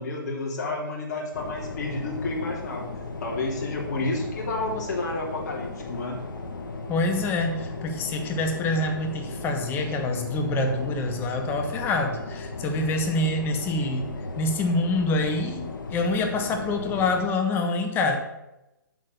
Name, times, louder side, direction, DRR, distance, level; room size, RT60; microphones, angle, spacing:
voice 1, 0.0-2.9 3.2-6.2, left 2 dB, 50° left, -1 dB, 3.3 m, -30 dB
sound 1, 1.3-17.2, left 3 dB, 65° left, 1.8 m, -36 dB
voice 2, 6.9-18.2, left 2 dB, 20° left, 4 dB, 1.3 m, -26 dB
8.3 x 6.7 x 6.6 m, 0.94 s
hypercardioid pair, 145°, 12 cm